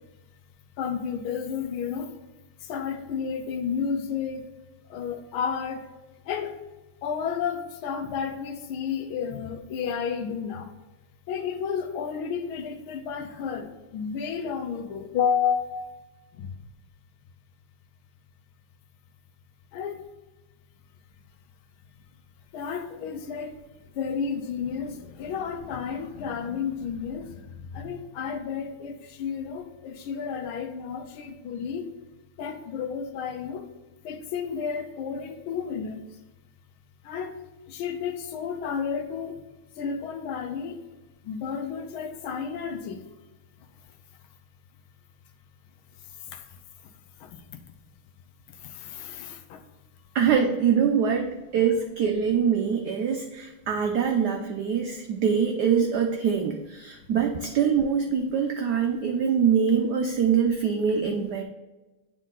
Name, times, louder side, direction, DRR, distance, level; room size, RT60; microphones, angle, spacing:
voice 1, 0.8-2.1 2.6-4.5 4.9-5.9 6.2-6.6 7.0-10.7 11.3-16.0 16.4-16.5 19.7-20.1 22.5-23.6 23.9-31.9 32.4-33.7 34.0-36.0 37.0-37.4 37.7-39.4 39.8-40.9 41.2-43.0 43.6-43.7 46.3-46.9 47.2-47.4 48.5-49.6, left 6 dB, 80° left, 7 dB, 1.5 m, -32 dB
voice 2, 50.1-61.4, right 7 dB, 80° right, 4 dB, 0.9 m, -24 dB
9.0 x 3.7 x 3.7 m, 1.1 s
omnidirectional pair, 2.4 m